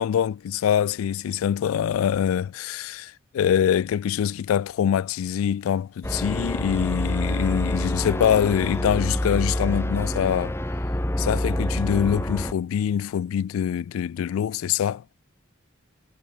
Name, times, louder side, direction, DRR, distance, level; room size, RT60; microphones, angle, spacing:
voice 1, 0.0-10.5 11.2-15.0, left 9 dB, 90° left, 0.3 m, -24 dB
sound 1, 6.0-12.5, left 1 dB, 10° left, 1.2 m, -27 dB
head